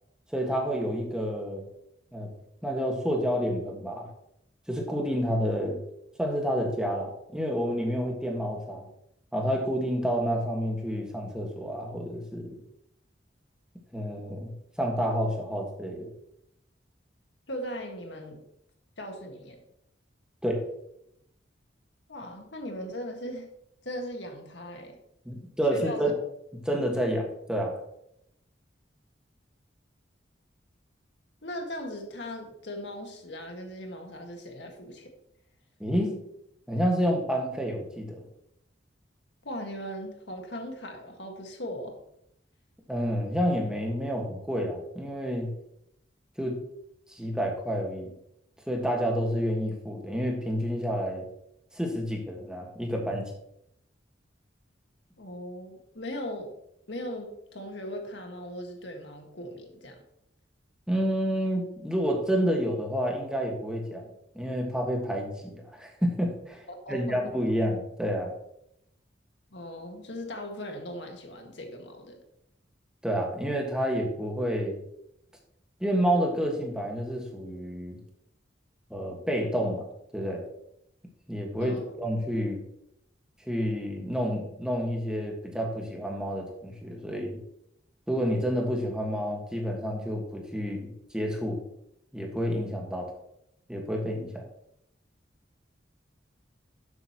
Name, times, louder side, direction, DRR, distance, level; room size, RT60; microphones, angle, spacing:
voice 1, 0.3-1.6 2.1-2.3 2.6-4.1 4.7-5.8 6.2-8.9 9.3-12.6 13.9-16.1 20.4-20.6 25.3-26.1 26.6-27.8 35.8-36.2 36.7-38.2 42.9-45.5 46.4-46.6 47.1-48.1 48.7-51.3 51.7-53.2 60.9-64.1 64.4-68.3 73.0-74.8 75.8-78.0 78.9-79.8 80.1-80.4 81.3-82.6 83.5-87.4 88.1-91.6 92.1-93.1 93.7-94.4, equal, 5° right, 0 dB, 1.6 m, -29 dB
voice 2, 17.5-18.5 19.0-19.6 22.1-23.5 23.8-25.0 25.7-26.2 31.4-35.1 39.4-42.0 55.2-56.5 56.9-60.0 66.7-67.3 69.5-72.2 81.6-81.8, equal, 70° left, 3 dB, 1.8 m, -38 dB
12.5 x 7.9 x 3.0 m, 0.77 s
head